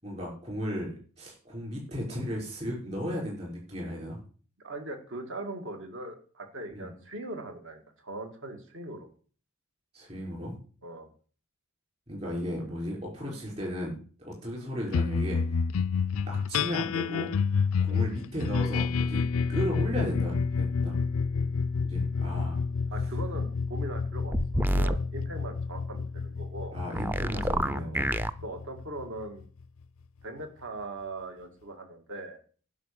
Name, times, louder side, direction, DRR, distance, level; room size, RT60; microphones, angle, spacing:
voice 1, 0.0-4.2 6.7-6.9 9.9-10.6 12.1-15.4 16.2-17.3 17.8-19.2 19.5-20.9 21.8-22.6 26.7-28.1, equal, 30° right, -2 dB, 5.9 m, -35 dB
voice 2, 4.6-9.1 10.8-11.1 17.9-18.1 22.9-26.8 27.7-28.0 28.4-29.4 30.2-32.4, right 2 dB, 60° right, 5 dB, 2.3 m, -40 dB
sound 1, 14.9-29.6, left 5 dB, 65° left, 0.4 m, -29 dB
sound 2, 24.3-25.0 26.9-28.3, right 1 dB, 10° right, 0.4 m, -27 dB
11.0 x 5.6 x 8.4 m, 0.42 s
head